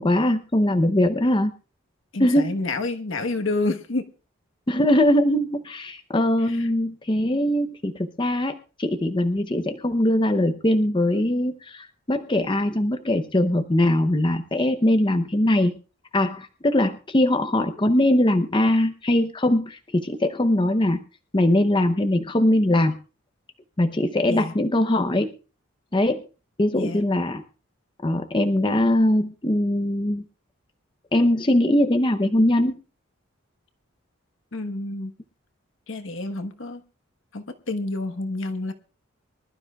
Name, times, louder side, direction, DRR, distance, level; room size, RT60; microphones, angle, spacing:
voice 1, 0.0-1.5 2.2-2.5 4.7-15.8 16.1-21.0 21.3-23.0 23.8-25.3 25.9-26.2 26.6-27.4 28.0-30.2 31.1-32.8, left 1 dB, 25° left, 0.6 m, -21 dB
voice 2, 2.1-4.1 6.4-6.7 24.3-24.5 26.7-27.0 34.5-35.1 35.9-36.8 37.3-38.7, left 2 dB, 65° left, 1.2 m, -29 dB
24.5 x 12.5 x 2.3 m
head